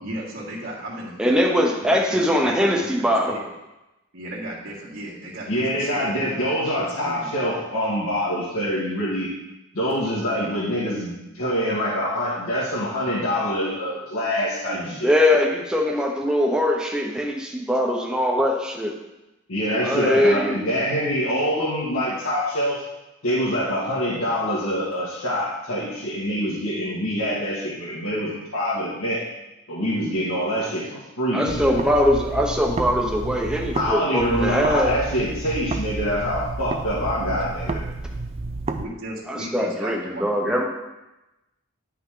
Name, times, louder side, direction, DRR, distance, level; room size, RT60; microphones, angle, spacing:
voice 1, 0.0-3.4 4.1-7.3 14.7-15.0 38.7-40.6, right 1 dB, 75° right, -12 dB, 2.0 m, -36 dB
voice 2, 1.2-3.3 15.0-18.9 19.8-20.6 31.3-34.9 39.3-40.7, left 1 dB, 5° right, -1 dB, 0.8 m, -21 dB
voice 3, 5.5-9.3 9.7-15.1 19.5-22.8 23.2-29.2 29.7-31.8 33.7-37.8, equal, 85° left, -8 dB, 1.9 m, -25 dB
sound 1, 31.5-33.9 34.2-38.8, right 3 dB, 30° right, 0.4 m, -30 dB
10.0 x 5.7 x 3.8 m, 0.98 s
head